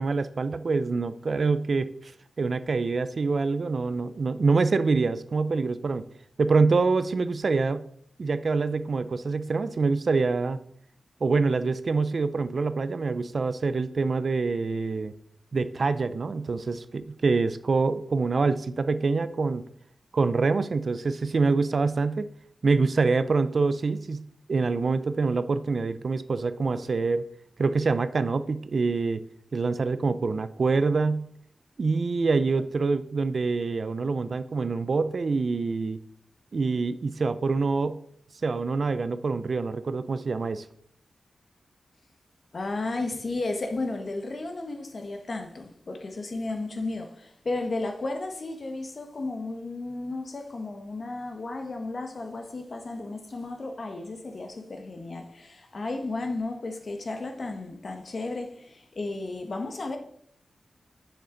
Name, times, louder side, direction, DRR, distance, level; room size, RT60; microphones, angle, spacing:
voice 1, 0.0-2.1 2.4-6.1 6.4-7.8 8.2-10.6 11.2-15.1 15.5-19.6 20.1-22.3 22.6-27.3 27.6-29.2 29.5-31.3 31.8-36.0 36.5-38.0 38.4-40.7, right 4 dB, 55° right, 0.4 m, -25 dB
voice 2, 42.5-60.0, left 2 dB, 50° left, 1.2 m, -33 dB
7.6 x 6.8 x 3.8 m
wide cardioid pair, 100°, 0 cm